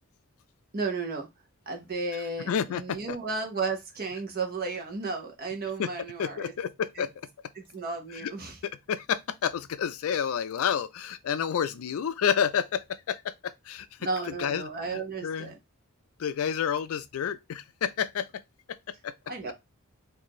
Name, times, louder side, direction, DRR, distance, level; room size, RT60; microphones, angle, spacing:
voice 1, 0.7-1.3 1.7-6.5 7.0-7.1 7.5-8.6 14.0-15.6 19.3-19.5, right 3 dB, 45° right, 1.0 m, -33 dB
voice 2, 2.5-3.2 5.8-5.9 6.2-7.1 8.1-8.3 8.6-13.9 14.3-15.5 16.2-18.4 19.0-19.1, left 8 dB, 70° left, 0.3 m, -30 dB
4.1 x 2.6 x 3.0 m
head